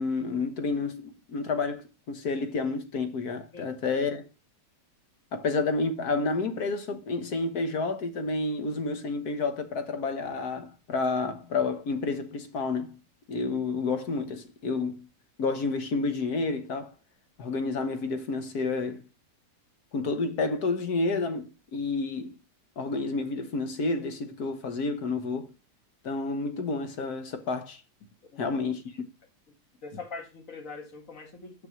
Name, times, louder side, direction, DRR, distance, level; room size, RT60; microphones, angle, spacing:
voice 1, 0.0-4.3 5.3-13.0 13.3-15.1 15.4-16.9 17.4-19.0 19.9-22.4 22.8-25.5 26.0-27.8 28.4-28.9, left 3 dB, 65° left, 1.7 m, -30 dB
voice 2, 29.8-31.7, left 4 dB, 50° left, 2.4 m, -42 dB
7.2 x 6.3 x 6.0 m
omnidirectional pair, 1.8 m